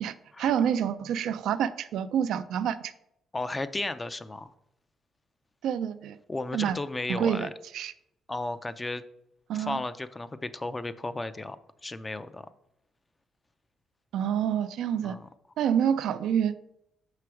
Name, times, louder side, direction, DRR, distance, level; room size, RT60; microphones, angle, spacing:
voice 1, 0.0-2.9 5.6-6.2 6.5-6.8 7.1-7.5 7.7-7.9 9.5-9.8 14.1-15.2 15.6-16.6, right 9 dB, 80° right, 0.4 m, -27 dB
voice 2, 3.3-4.5 6.3-7.5 8.3-9.0 9.5-11.6 11.8-12.5 15.0-15.3, left 2 dB, 20° left, 0.4 m, -34 dB
5.9 x 4.8 x 4.6 m
cardioid pair, 90°, 0 cm